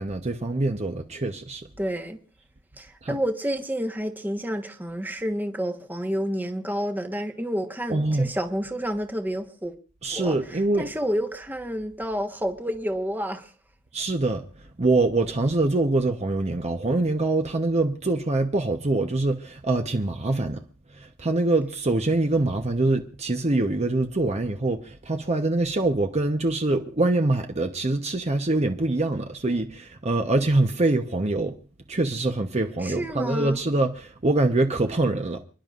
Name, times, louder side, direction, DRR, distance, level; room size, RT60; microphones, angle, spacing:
voice 1, 0.0-1.7 3.0-3.2 7.9-8.3 10.0-10.9 13.9-20.6 20.9-31.6 31.9-35.4, right 2 dB, 35° right, 0.9 m, -24 dB
voice 2, 1.8-2.2 2.8-9.7 10.1-10.3 10.7-13.5 32.8-33.6, equal, 10° right, 1.2 m, -29 dB
29.5 x 11.0 x 2.5 m
head